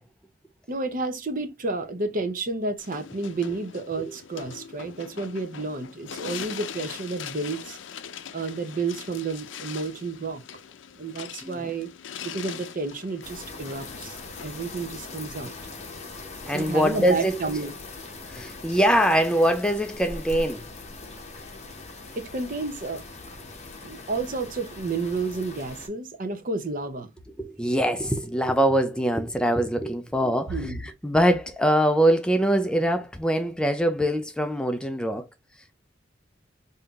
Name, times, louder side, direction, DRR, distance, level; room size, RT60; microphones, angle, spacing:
voice 1, 0.7-7.8 8.3-10.4 11.0-11.9 12.2-15.5 16.5-17.7 22.2-23.0 23.8-27.1 30.5-30.8, right 3 dB, 45° right, 0.7 m, -31 dB
sound 1, 2.8-15.7, left 8 dB, 80° left, 0.5 m, -42 dB
sound 2, 13.2-25.9, left 3 dB, 35° left, 0.9 m, -41 dB
voice 2, 16.5-17.4 18.3-20.7 27.4-35.3, equal, 5° left, 0.3 m, -23 dB
5.3 x 2.7 x 2.3 m
head